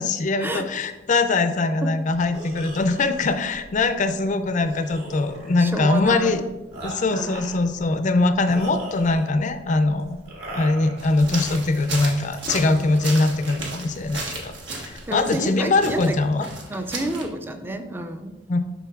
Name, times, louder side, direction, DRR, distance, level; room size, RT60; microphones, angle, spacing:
voice 1, 0.0-6.4 6.8-10.2 10.5-16.5 18.5-18.6, left 3 dB, 45° left, 9 dB, 0.4 m, -22 dB
sound 1, 2.2-15.2, right 1 dB, 55° right, 2.0 m, -40 dB
voice 2, 5.6-6.4 7.1-7.3 15.1-16.2 16.7-18.3, right 1 dB, 10° right, 7 dB, 0.4 m, -29 dB
sound 2, 11.0-17.2, right 3 dB, 75° right, 1.2 m, -35 dB
11.0 x 3.8 x 2.4 m, 1.1 s
head